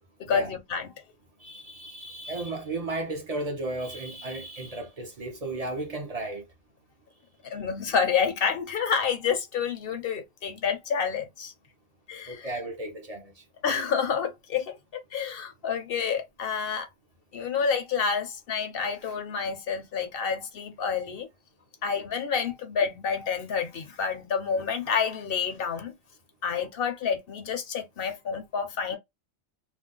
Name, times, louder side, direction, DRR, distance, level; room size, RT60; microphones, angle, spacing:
voice 1, 0.2-0.9 7.4-11.5 12.1-12.5 13.6-14.8 15.1-16.9 17.3-21.3 21.8-25.9 26.4-29.0, left 6 dB, 60° left, 0.7 m, -29 dB
voice 2, 1.4-6.4 12.3-13.3, right 2 dB, 45° right, 0.5 m, -34 dB
2.5 x 2.0 x 3.6 m
omnidirectional pair, 1.2 m